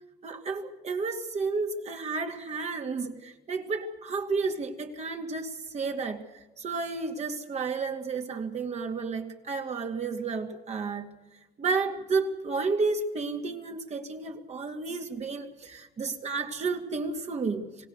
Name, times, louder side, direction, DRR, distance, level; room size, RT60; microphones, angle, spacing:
voice 1, 0.2-6.2 6.6-11.1 11.6-17.7, right 4 dB, 40° right, 4 dB, 2.5 m, -31 dB
27.0 x 18.0 x 6.7 m, 1.1 s
cardioid pair, 110°, 17 cm